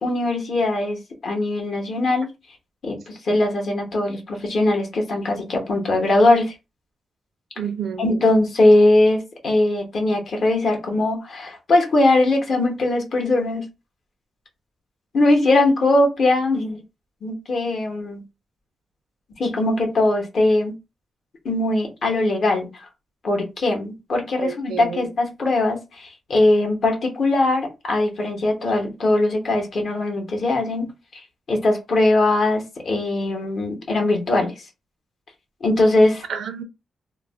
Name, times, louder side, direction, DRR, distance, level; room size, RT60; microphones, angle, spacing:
voice 1, 0.0-1.0 1.2-2.3 2.8-6.5 8.0-13.6 15.1-16.8 17.2-18.2 19.4-20.7 21.4-22.8 23.2-31.2 31.5-34.5 35.6-36.2, left 2 dB, 55° left, 0.8 m, -20 dB
voice 2, 7.6-8.1 24.4-25.1 36.3-36.6, right 7 dB, 80° right, 0.4 m, -29 dB
2.3 x 2.0 x 3.4 m
wide cardioid pair, 145°, 0 cm